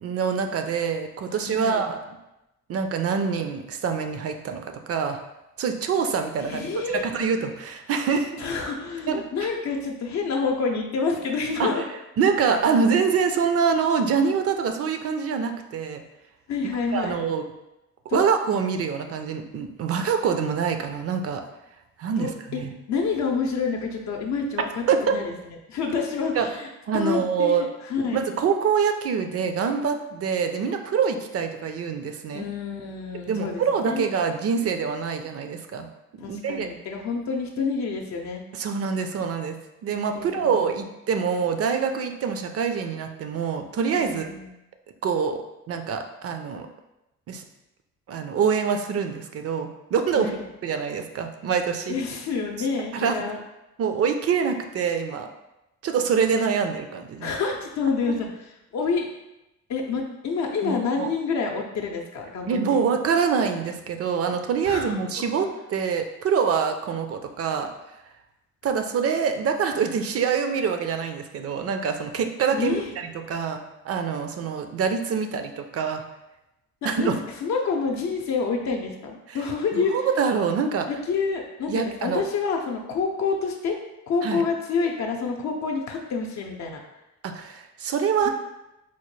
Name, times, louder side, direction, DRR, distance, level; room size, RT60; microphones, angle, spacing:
voice 1, 0.0-2.0 2.7-4.6 4.9-5.2 5.6-8.5 9.1-9.3 11.6-11.7 12.2-16.0 16.9-17.4 18.1-21.4 22.0-22.7 24.9-25.0 26.4-26.5 26.9-27.6 28.1-32.5 33.3-35.9 36.1-36.7 38.5-44.2 45.0-45.4 45.7-46.7 47.3-47.4 48.1-50.3 50.6-51.9 52.9-53.3 53.8-55.3 55.8-57.3 58.1-58.2 60.6-61.1 62.5-67.7 68.6-76.0 76.8-77.2 79.3-79.4 79.7-80.9 81.7-82.2 84.2-84.4 87.2-88.3, right 6 dB, 50° right, 6 dB, 0.5 m, -25 dB
voice 2, 1.4-1.9 6.4-7.0 8.4-11.9 16.5-17.2 18.1-18.2 22.2-22.6 22.9-25.3 25.7-26.7 26.9-28.2 32.3-34.0 36.2-38.4 40.1-40.5 43.9-44.5 50.2-50.4 51.9-53.4 57.2-58.3 58.7-59.1 59.7-62.8 64.7-65.0 72.5-72.9 76.8-79.9 80.9-83.8 84.1-86.8 88.2-88.3, left 5 dB, 65° left, 1 dB, 0.6 m, -28 dB
4.4 x 2.1 x 3.1 m, 0.93 s
cardioid pair, 90°, 30 cm